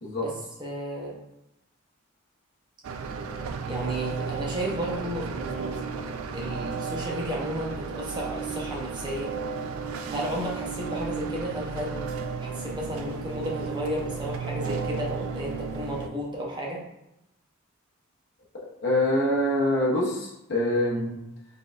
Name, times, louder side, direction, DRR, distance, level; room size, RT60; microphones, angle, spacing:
voice 1, 0.2-1.2 3.6-5.9 6.3-9.3 10.1-12.1 12.4-16.8, equal, 20° right, -3 dB, 0.7 m, -33 dB
sound 1, 2.8-16.1, right 5 dB, 80° right, 0.4 m, -33 dB
voice 2, 18.8-21.2, left 1 dB, 50° left, -5 dB, 0.7 m, -25 dB
4.4 x 3.6 x 2.4 m, 0.87 s
head